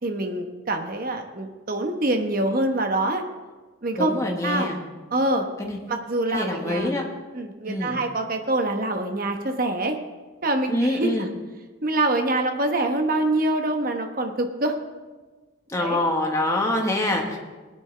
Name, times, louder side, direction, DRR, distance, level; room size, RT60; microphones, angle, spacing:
voice 1, 0.0-3.2 3.8-4.1 4.4-4.7 5.1-5.5 5.9-6.9 7.3-10.0 10.4-11.3 11.8-14.8 15.8-16.0, right 2 dB, 45° right, 5 dB, 1.0 m, -25 dB
voice 2, 4.0-4.8 5.6-5.8 6.3-7.0 7.7-8.0 10.7-11.3 15.7-17.4, left 1 dB, 15° left, 1 dB, 1.3 m, -25 dB
18.5 x 9.7 x 3.4 m, 1.3 s
head